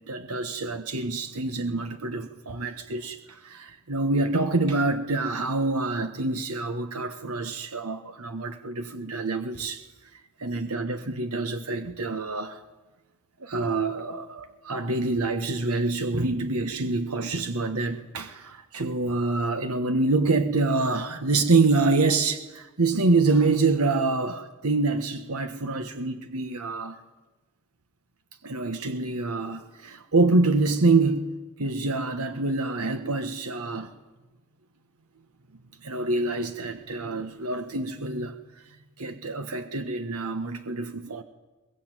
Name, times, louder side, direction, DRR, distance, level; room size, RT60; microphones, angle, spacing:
voice 1, 0.1-9.8 10.1-12.6 13.4-27.0 28.4-33.9 35.8-38.4 39.0-41.2, right 3 dB, 70° right, 1.4 m, -26 dB
22.5 x 21.0 x 9.1 m
head